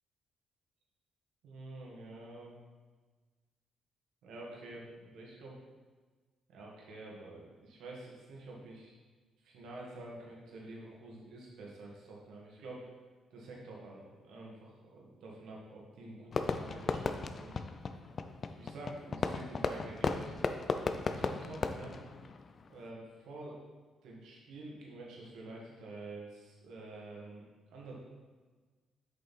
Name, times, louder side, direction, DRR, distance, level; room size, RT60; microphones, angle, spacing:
voice 1, 1.4-2.6 4.2-5.6 6.5-8.9 9.4-12.9 13.3-17.6 18.6-20.3 21.1-22.0 22.7-23.6 24.0-27.4 27.7-28.0, right 2 dB, 80° right, -3 dB, 1.9 m, -48 dB
Fireworks, 16.3-22.8, left 4 dB, 45° left, 0.5 m, -36 dB
7.4 x 5.6 x 4.3 m, 1.4 s
cardioid pair, 90°, 0 cm